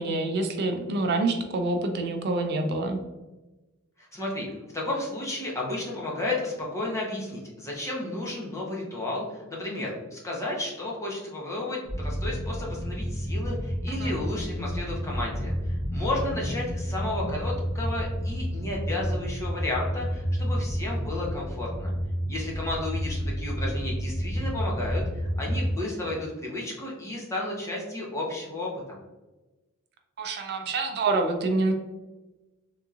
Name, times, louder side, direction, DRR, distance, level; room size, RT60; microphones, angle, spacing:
voice 1, 0.0-3.0 14.0-14.1 30.2-31.7, right 2 dB, 50° right, 5 dB, 0.4 m, -26 dB
voice 2, 4.0-21.9 22.3-29.0, left 2 dB, 15° left, -4 dB, 0.8 m, -33 dB
sound 1, 11.8-25.7, equal, 55° left, 1.2 m, -30 dB
3.5 x 2.9 x 2.4 m, 1.1 s
head